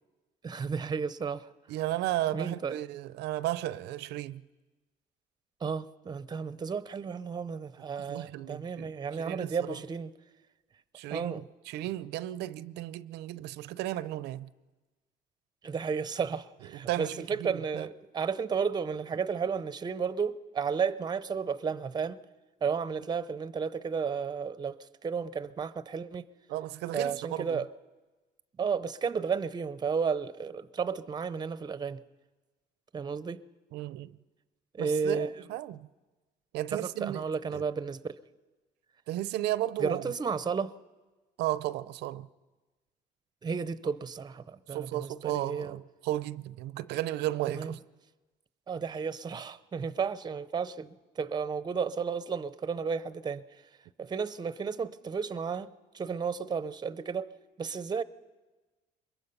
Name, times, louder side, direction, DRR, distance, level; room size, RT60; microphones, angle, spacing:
voice 1, 0.4-1.5 2.3-2.8 5.6-10.1 11.1-11.4 15.6-22.2 22.6-26.3 26.9-27.7 28.6-32.0 32.9-33.4 34.7-35.3 36.7-38.2 39.8-40.7 43.4-45.7 47.5-47.8 48.7-53.4 54.0-55.7 55.9-57.3 57.6-58.0, right 6 dB, 25° right, 0.6 m, -33 dB
voice 2, 1.7-4.4 8.0-9.8 10.9-14.5 16.7-17.9 26.5-27.6 33.7-34.2 34.8-35.9 36.5-37.2 37.5-37.6 39.1-40.0 41.4-42.3 44.7-47.8, right 14 dB, 85° right, 0.6 m, -34 dB
23.0 x 21.5 x 5.6 m
cardioid pair, 110°, 17 cm